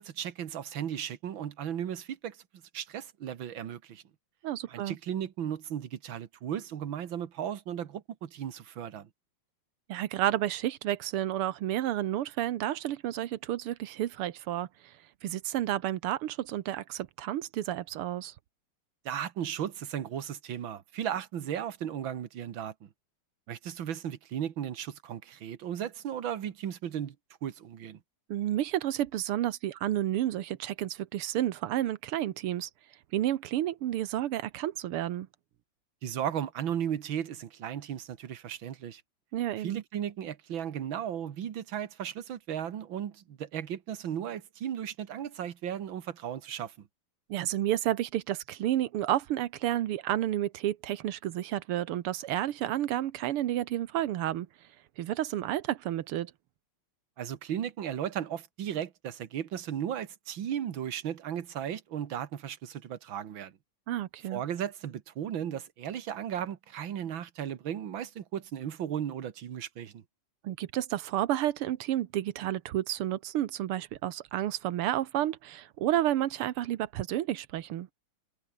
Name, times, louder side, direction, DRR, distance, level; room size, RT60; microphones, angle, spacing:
voice 1, 0.0-2.4 2.7-4.0 4.7-9.1 19.1-22.7 23.5-27.2 27.4-28.0 36.0-39.0 39.6-46.9 57.2-63.5 64.3-70.0, right 9 dB, 65° right, 2.1 m, -35 dB
voice 2, 4.4-5.0 9.9-14.7 15.2-18.3 28.3-32.7 33.1-35.3 39.3-39.8 47.3-54.5 55.0-56.3 63.9-64.4 70.4-77.9, right 13 dB, 80° right, 1.9 m, -31 dB
omnidirectional pair, 2.4 m